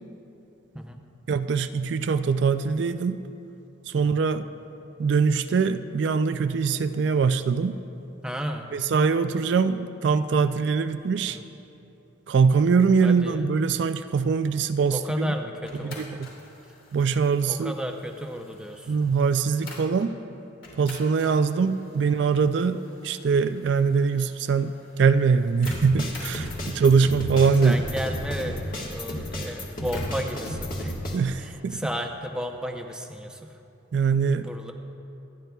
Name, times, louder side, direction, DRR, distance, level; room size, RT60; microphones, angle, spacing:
voice 1, 1.3-3.2 3.9-4.4 5.0-7.8 8.7-11.4 12.3-15.3 15.8-16.3 16.9-17.7 18.9-20.1 20.8-22.8 23.0-27.8 31.1-31.8 33.9-34.5, right 5 dB, 60° right, 10 dB, 0.3 m, -23 dB
voice 2, 8.2-8.7 11.3-11.4 13.0-13.4 14.9-16.2 17.5-18.9 22.0-22.3 27.6-30.9 31.4-33.4 34.4-34.7, equal, 5° right, 3 dB, 0.6 m, -33 dB
sound 1, 15.7-20.1 20.6-30.4, left 3 dB, 75° left, 3.1 m, -49 dB
sound 2, 25.6-31.2, equal, 45° left, 1.7 m, -32 dB
26.5 x 10.5 x 2.3 m, 2.9 s
head